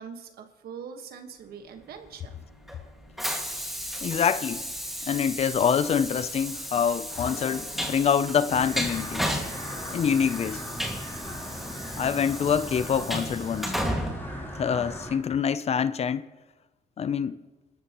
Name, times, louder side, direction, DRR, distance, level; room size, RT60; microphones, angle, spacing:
voice 1, 0.0-2.3, right 6 dB, 75° right, 1.5 m, -42 dB
Train, 2.0-15.2, equal, ahead, 2.1 m, -34 dB
voice 2, 4.0-4.7 5.1-9.3 9.9-10.6 12.0-13.7 14.6-16.3 17.0-17.4, left 7 dB, 40° left, 0.6 m, -25 dB
sound 1, 8.5-15.2, left 1 dB, 15° left, 3.5 m, -39 dB
29.5 x 13.5 x 3.1 m
cardioid pair, 105°, 16 cm